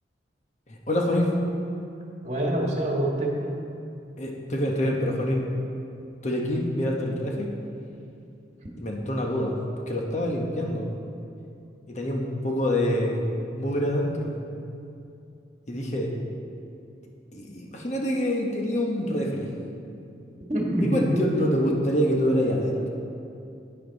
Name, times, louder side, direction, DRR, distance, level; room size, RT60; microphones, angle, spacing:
voice 1, 0.7-1.3 4.2-5.4 6.2-7.5 8.8-9.5 9.9-10.9 11.9-13.2 13.5-14.3 15.7-16.1 17.3-19.5 20.9-22.9, equal, 40° left, 0 dB, 1.3 m, -26 dB
voice 2, 2.2-3.5 20.5-21.3, right 1 dB, 40° right, -1 dB, 1.7 m, -25 dB
10.5 x 9.4 x 4.1 m, 2.6 s
head